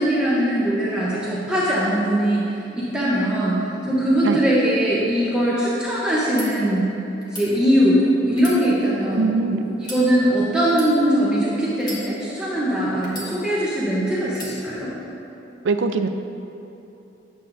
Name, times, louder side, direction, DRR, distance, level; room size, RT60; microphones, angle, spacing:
voice 1, 0.0-2.4 2.7-6.9 7.3-14.9, equal, 5° right, -8 dB, 0.9 m, -21 dB
sound 1, 6.3-6.5 7.2-7.5 8.3-9.2 9.8-10.0 10.7-10.9 11.8-12.4 13.0-13.7 14.3-14.6, equal, 25° left, 1.3 m, -36 dB
voice 2, 9.1-9.6 15.6-16.1, right 4 dB, 85° right, 8 dB, 0.4 m, -21 dB
8.8 x 7.4 x 2.6 m, 2.8 s
head